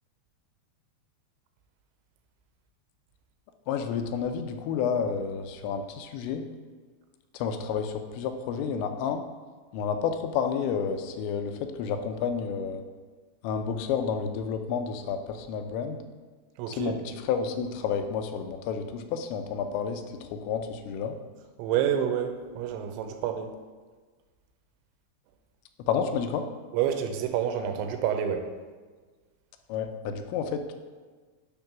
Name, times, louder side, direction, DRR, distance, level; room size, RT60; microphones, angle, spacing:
voice 1, 3.7-6.4 7.3-9.2 9.7-12.8 13.4-16.0 16.7-21.2 25.9-26.4 29.7-30.7, left 6 dB, 85° left, 7 dB, 2.8 m, -30 dB
voice 2, 16.6-17.0 21.6-23.5 26.7-28.5, right 9 dB, 85° right, 5 dB, 3.0 m, -28 dB
10.5 x 3.5 x 5.9 m, 1.4 s
omnidirectional pair, 5.2 m